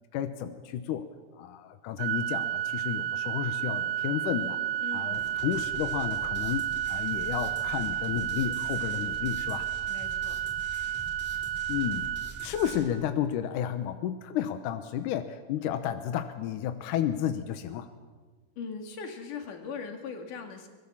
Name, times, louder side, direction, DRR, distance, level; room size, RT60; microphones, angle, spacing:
voice 1, 0.1-1.1 1.3-6.6 6.9-9.7 11.7-12.1 12.4-17.9, left 10 dB, 75° left, 9 dB, 2.0 m, -32 dB
Organ, 2.0-13.0, right 11 dB, 85° right, 1.7 m, -32 dB
voice 2, 4.8-5.4 9.9-10.4 18.6-20.7, left 5 dB, 55° left, 5 dB, 3.4 m, -40 dB
sound 1, 5.1-12.9, equal, 5° left, 3.0 m, -45 dB
23.5 x 21.0 x 7.3 m, 1.4 s
omnidirectional pair, 4.6 m